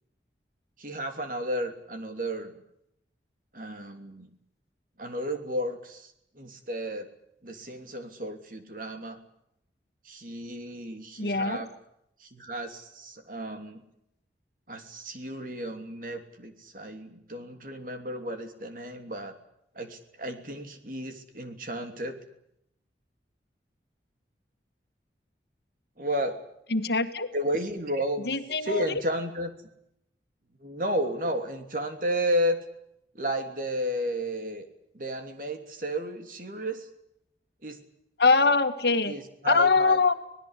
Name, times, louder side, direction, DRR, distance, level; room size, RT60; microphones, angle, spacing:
voice 1, 0.8-2.6 3.5-4.3 5.0-7.1 7.4-9.2 10.0-11.7 12.2-13.8 14.7-19.3 19.7-22.2 26.0-26.4 27.3-29.5 30.6-32.6 33.1-34.7 34.9-36.9 37.6-37.8 39.1-40.0, equal, 50° right, 6 dB, 3.0 m, -33 dB
voice 2, 11.2-11.6 26.7-27.3 28.3-29.0 38.2-39.1 39.4-40.1, left 4 dB, 65° left, 8 dB, 1.8 m, -23 dB
26.0 x 19.5 x 8.2 m, 0.78 s
head